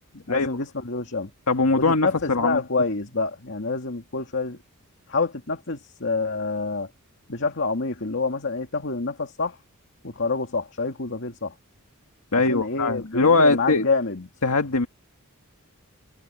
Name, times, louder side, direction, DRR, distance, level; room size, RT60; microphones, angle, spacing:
voice 1, 0.1-1.3 1.8-4.6 5.1-6.9 7.3-9.6 10.0-11.5 12.3-14.3, left 3 dB, 60° left, 2.1 m, -27 dB
voice 2, 1.5-2.6 12.3-13.9 14.4-14.9, left 3 dB, 80° left, 1.9 m, -21 dB
head